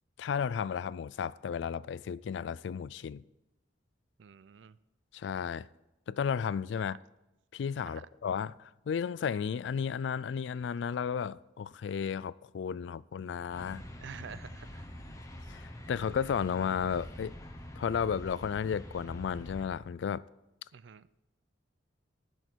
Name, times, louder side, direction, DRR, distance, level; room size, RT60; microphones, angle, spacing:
voice 1, 0.2-3.2 5.1-5.7 6.1-7.0 7.5-13.8 15.5-17.4 17.8-20.2, left 7 dB, 65° left, 0.3 m, -33 dB
voice 2, 4.2-4.8 6.8-7.0 7.8-8.0 14.0-14.8 20.7-21.1, right 6 dB, 70° right, 0.4 m, -48 dB
sound 1, 13.5-19.7, equal, 15° left, 1.1 m, -45 dB
19.0 x 6.4 x 4.5 m
head